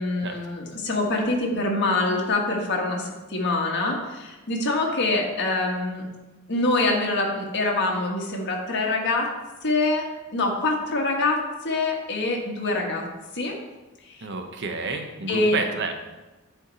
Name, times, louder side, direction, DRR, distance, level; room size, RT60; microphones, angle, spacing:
voice 1, 0.0-6.0 6.5-9.3 9.6-10.1 10.3-13.1 13.3-13.5 14.1-14.2 15.3-15.6, left 2 dB, 55° left, 0 dB, 1.5 m, -25 dB
voice 2, 14.2-16.0, right 3 dB, 55° right, 5 dB, 0.8 m, -30 dB
9.6 x 4.6 x 4.0 m, 1.1 s
head